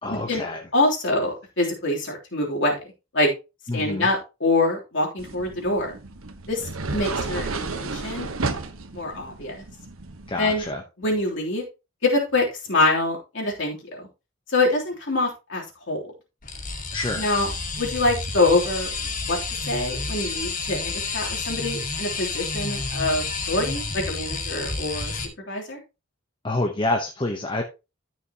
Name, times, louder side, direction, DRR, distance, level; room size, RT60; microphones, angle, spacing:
voice 1, 0.0-0.6 3.7-4.1 10.3-10.8 16.9-17.3 26.4-27.6, left 2 dB, 25° left, 3 dB, 1.0 m, -27 dB
voice 2, 0.7-2.8 3.1-3.3 3.7-5.9 6.5-8.3 8.9-9.5 10.4-10.6 11.0-11.6 12.0-14.0 14.5-16.0 17.2-17.5 17.8-19.4 19.7-25.1 25.5-25.8, left 2 dB, 60° left, -1 dB, 3.3 m, -25 dB
sound 1, 5.2-10.7, right 3 dB, 80° right, 1.2 m, -32 dB
sound 2, 16.4-25.3, left 4 dB, 40° left, 2.1 m, -30 dB
13.5 x 6.1 x 2.9 m, 0.28 s
head